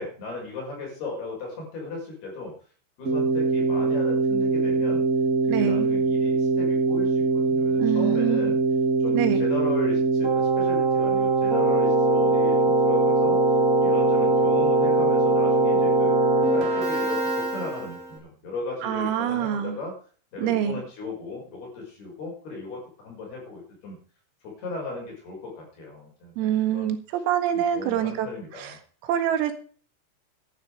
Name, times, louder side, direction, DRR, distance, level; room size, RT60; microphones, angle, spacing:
voice 1, 0.0-2.5 3.0-5.0 5.5-8.6 9.0-13.4 13.8-16.2 16.5-20.0 20.3-24.0 24.4-27.0 27.5-28.8, left 3 dB, 50° left, -1 dB, 7.9 m, -36 dB
Keyboard (musical), 3.0-18.1, right 3 dB, 20° right, 3.0 m, -22 dB
voice 2, 5.5-5.9 7.8-8.5 9.1-9.4 18.8-19.8 20.4-20.8 26.4-28.3 28.6-28.7 29.0-29.5, right 10 dB, 85° right, 7 dB, 4.3 m, -25 dB
13.5 x 11.5 x 5.0 m, 0.42 s
omnidirectional pair, 6.0 m